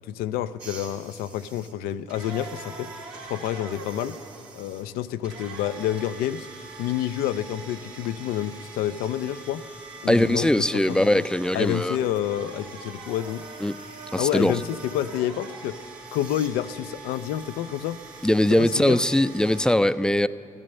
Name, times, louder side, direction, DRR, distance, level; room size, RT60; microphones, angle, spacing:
voice 1, 0.1-2.9 3.3-4.2 4.5-6.5 6.8-9.7 10.0-11.2 11.5-13.5 14.2-15.8 16.1-18.0 18.5-19.0, left 11 dB, 80° left, 0.4 m, -29 dB
sound 1, 0.6-19.7, right 4 dB, 85° right, 1.8 m, -43 dB
voice 2, 10.1-12.0 13.6-13.8 14.1-14.5 18.2-20.3, left 1 dB, 5° left, 0.4 m, -21 dB
14.0 x 12.5 x 6.5 m
hypercardioid pair, 50°, 15 cm